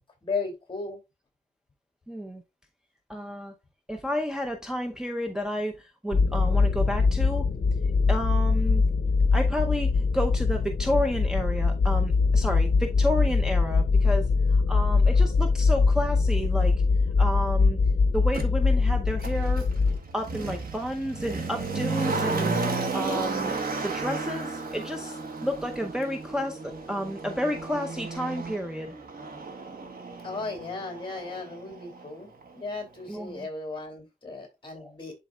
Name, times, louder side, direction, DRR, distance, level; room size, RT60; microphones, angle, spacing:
voice 1, 0.2-1.0 30.2-32.3 32.5-35.2, left 3 dB, 35° left, 2.7 m, -35 dB
voice 2, 2.1-2.4 3.1-3.5 3.9-7.5 8.1-8.8 9.3-16.8 17.2-17.8 18.1-19.6 20.1-22.5 22.9-23.5 23.8-28.9 33.1-33.5 34.7-34.9, equal, 5° right, 0.7 m, -31 dB
sound 1, 6.1-20.0, left 4 dB, 65° left, 0.8 m, -22 dB
Motor vehicle (road), 18.3-18.5 19.2-32.1 32.4-32.5, right 3 dB, 75° right, 1.5 m, -33 dB
11.5 x 4.1 x 2.3 m
wide cardioid pair, 145°, 15 cm